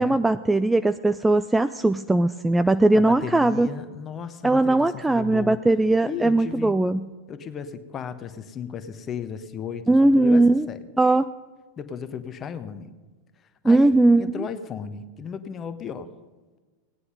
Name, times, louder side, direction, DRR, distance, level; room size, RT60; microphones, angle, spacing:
voice 1, 0.0-3.7 4.4-7.1 9.9-10.7 11.0-11.2 13.6-14.5, right 2 dB, 5° right, 12 dB, 0.3 m, -19 dB
voice 2, 2.9-5.6 6.0-6.8 7.3-11.1 11.8-12.9 13.6-13.9 14.2-16.1, left 7 dB, 25° left, 10 dB, 1.0 m, -35 dB
17.0 x 9.7 x 5.4 m, 1.3 s
figure-of-eight pair, 90°, 0 cm